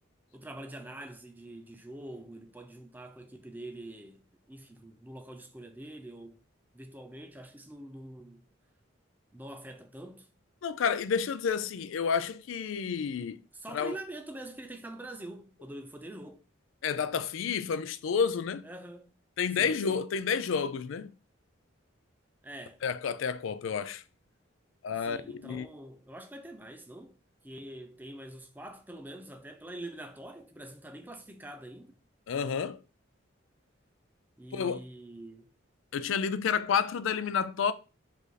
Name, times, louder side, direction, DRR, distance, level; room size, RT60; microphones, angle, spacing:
voice 1, 0.3-6.4 6.7-8.5 9.3-10.3 13.5-16.4 18.6-19.1 19.5-20.0 22.4-22.8 25.0-27.1 27.4-31.9 34.4-35.5, right 1 dB, 10° right, 0.4 m, -45 dB
voice 2, 10.6-13.4 13.7-13.9 16.8-18.6 19.4-21.1 22.8-24.0 24.8-25.7 32.3-32.8 34.5-34.8 35.9-37.7, left 6 dB, 75° left, 0.4 m, -30 dB
5.1 x 2.6 x 4.0 m
head